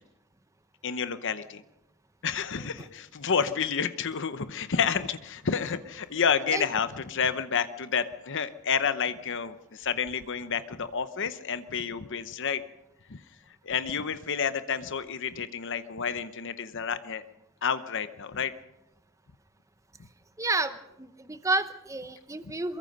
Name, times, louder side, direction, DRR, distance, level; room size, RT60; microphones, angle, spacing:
voice 1, 0.8-1.6 2.2-12.6 13.1-13.2 13.6-17.2 17.6-18.5, left 6 dB, 55° left, 12 dB, 0.8 m, -30 dB
voice 2, 20.4-20.7 21.0-22.8, right 2 dB, 15° right, 10 dB, 0.8 m, -30 dB
23.5 x 22.0 x 5.4 m, 0.89 s
head